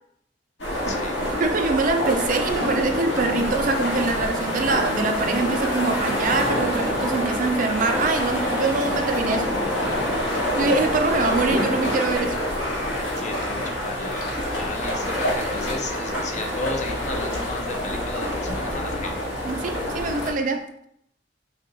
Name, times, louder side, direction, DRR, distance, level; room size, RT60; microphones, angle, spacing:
sound 1, 0.6-20.3, left 1 dB, 75° left, 1.6 m, -26 dB
voice 1, 0.9-1.2 13.2-14.3 14.5-19.1, left 2 dB, 40° left, 4 dB, 0.6 m, -34 dB
voice 2, 1.4-9.5 10.5-12.4 19.4-20.7, right 3 dB, 45° right, 6 dB, 0.4 m, -24 dB
sound 2, 2.5-14.3, right 1 dB, 85° right, 1.0 m, -47 dB
5.6 x 2.3 x 3.9 m, 0.72 s
head